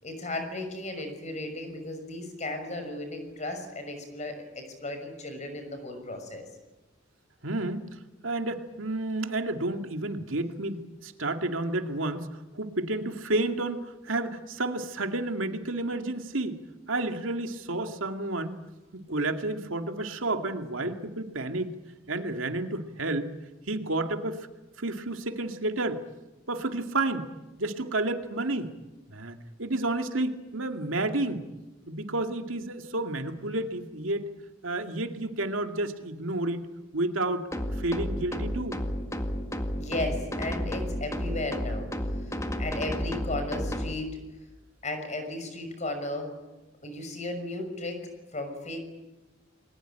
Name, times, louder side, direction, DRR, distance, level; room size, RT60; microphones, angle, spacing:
voice 1, 0.0-6.4 39.8-41.9 42.3-44.2 44.8-46.3 46.8-48.0 48.3-48.8, left 2 dB, 35° left, 6 dB, 6.2 m, -35 dB
voice 2, 7.4-7.8 8.2-12.3 12.5-16.6 16.9-18.6 18.9-21.7 22.1-23.3 23.7-24.5 24.8-26.0 26.5-27.2 27.6-28.7 29.1-31.4 31.9-34.3 34.6-36.6 36.9-37.5 37.8-38.8, right 2 dB, 90° right, 6 dB, 2.2 m, -30 dB
sound 1, 37.5-43.9, equal, 15° left, 1.9 m, -32 dB
29.0 x 21.5 x 9.1 m, 1.1 s
head